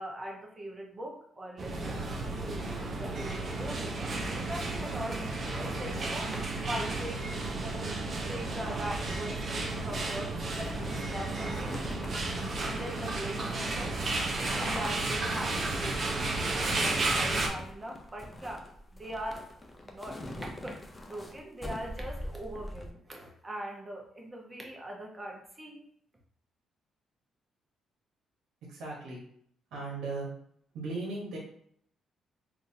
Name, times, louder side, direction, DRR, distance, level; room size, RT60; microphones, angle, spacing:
voice 1, 0.0-11.7 12.6-14.1 14.4-18.6 18.9-19.4 19.8-25.9, right 1 dB, 25° right, 0 dB, 0.9 m, -41 dB
sound 1, 1.6-17.5, right 2 dB, 50° right, 0.7 m, -33 dB
sound 2, 9.3-22.9, left 1 dB, 20° left, 0.6 m, -44 dB
voice 2, 28.7-29.2 29.7-30.3 30.7-31.4, right 3 dB, 85° right, -2 dB, 1.0 m, -37 dB
3.6 x 2.5 x 2.7 m, 0.66 s
cardioid pair, 90°, 0 cm